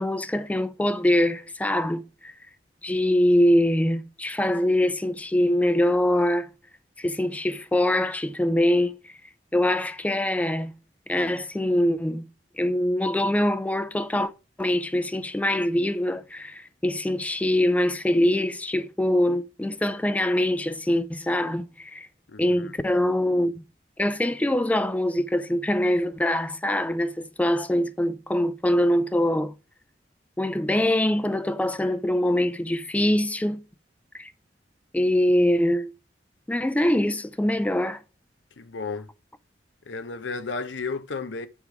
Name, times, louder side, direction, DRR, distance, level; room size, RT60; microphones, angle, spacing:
voice 1, 0.0-2.3 2.8-6.5 7.0-9.1 9.5-10.7 11.1-12.3 12.6-14.3 14.6-22.1 22.4-23.6 24.0-29.5 30.4-33.6 34.1-34.3 34.9-35.9 36.5-38.0, left 1 dB, 10° left, 0.3 m, -23 dB
voice 2, 22.3-22.7 38.6-39.1 39.9-41.5, left 4 dB, 80° left, 0.7 m, -33 dB
8.2 x 3.6 x 4.7 m
head